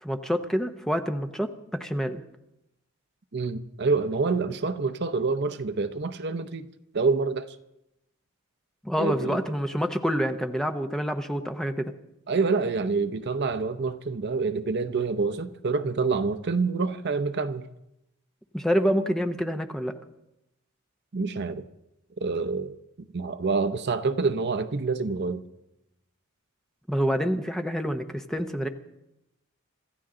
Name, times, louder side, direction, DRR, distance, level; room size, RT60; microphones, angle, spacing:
voice 1, 0.0-2.2 8.8-11.9 18.5-20.0 26.9-28.7, equal, ahead, 6 dB, 0.7 m, -27 dB
voice 2, 3.3-6.7 6.9-7.6 9.0-9.4 12.3-17.6 21.1-21.6 22.2-25.4, right 4 dB, 50° right, 11 dB, 0.7 m, -27 dB
26.0 x 14.0 x 3.8 m, 0.87 s
head